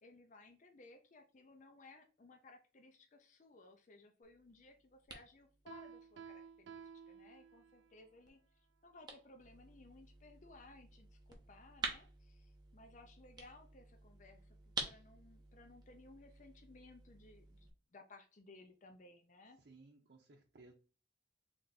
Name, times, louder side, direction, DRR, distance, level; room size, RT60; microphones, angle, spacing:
voice 1, 0.0-19.6, left 2 dB, 45° left, 5 dB, 0.5 m, -60 dB
sound 1, 4.2-17.7, right 3 dB, 25° right, 0.7 m, -50 dB
Piano, 5.7-8.0, right 6 dB, 80° right, 0.3 m, -54 dB
voice 2, 19.6-20.7, right 3 dB, 65° right, -1 dB, 0.7 m, -60 dB
3.4 x 2.6 x 3.9 m, 0.35 s
head